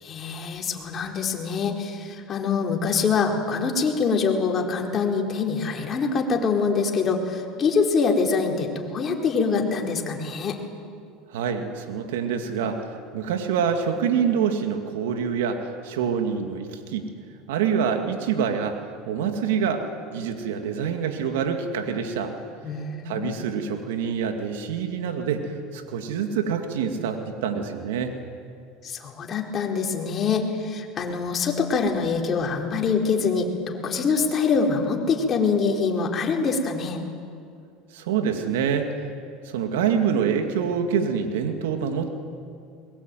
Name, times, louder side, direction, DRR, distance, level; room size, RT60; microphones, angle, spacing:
voice 1, 0.0-10.6 22.6-23.3 28.8-37.0, left 5 dB, 35° left, 1 dB, 4.3 m, -24 dB
voice 2, 11.3-17.0 17.5-18.8 19.1-22.3 23.1-28.1 37.9-39.0 39.4-42.1, right 7 dB, 80° right, 5 dB, 2.2 m, -26 dB
22.0 x 22.0 x 9.2 m, 2.3 s
supercardioid pair, 100°, 0 cm